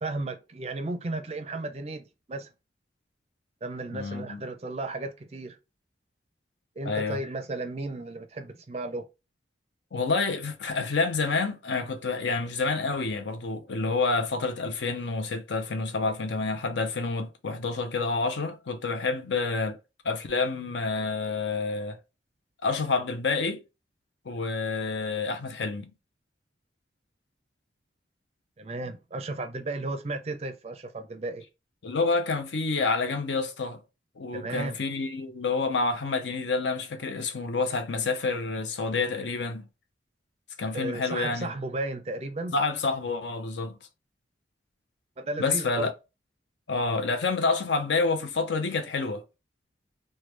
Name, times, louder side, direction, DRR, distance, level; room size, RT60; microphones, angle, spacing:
voice 1, 0.0-2.5 3.6-5.6 6.8-9.1 28.6-31.4 34.3-34.8 40.7-42.5 45.2-45.9, right 2 dB, 35° right, 0.4 m, -34 dB
voice 2, 3.9-4.4 6.8-7.2 9.9-19.8 20.0-22.0 22.6-23.6 24.3-25.9 31.8-33.8 34.2-39.7 40.6-41.5 42.5-43.7 45.4-45.9 46.7-49.2, left 4 dB, 75° left, 0.6 m, -28 dB
3.1 x 2.2 x 3.2 m
head